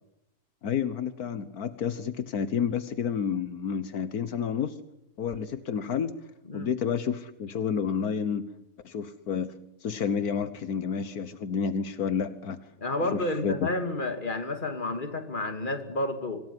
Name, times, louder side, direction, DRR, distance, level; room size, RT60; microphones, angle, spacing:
voice 1, 0.6-4.8 5.2-6.1 6.5-8.4 8.8-9.5 9.8-12.6 13.0-13.6, left 7 dB, 80° left, 12 dB, 1.7 m, -30 dB
voice 2, 12.8-16.4, left 2 dB, 35° left, 7 dB, 2.7 m, -30 dB
25.5 x 18.0 x 9.7 m, 0.82 s
omnidirectional pair, 1.6 m